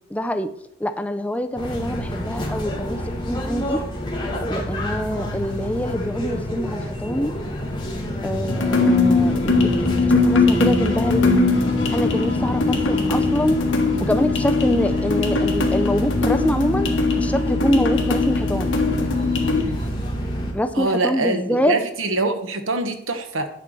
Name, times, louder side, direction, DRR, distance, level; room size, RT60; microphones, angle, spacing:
voice 1, 0.1-0.5 0.8-3.0 3.3-3.8 4.5-7.3 8.2-11.4 11.9-13.6 14.0-16.9 17.2-18.7 20.5-21.7, equal, 5° left, 8 dB, 0.4 m, -25 dB
sound 1, 1.6-20.5, equal, 25° left, 1.9 m, -28 dB
sound 2, 8.5-19.6, left 3 dB, 65° left, 1.5 m, -21 dB
voice 2, 20.7-23.5, right 2 dB, 75° right, 7 dB, 1.2 m, -24 dB
10.5 x 4.5 x 6.7 m, 0.76 s
head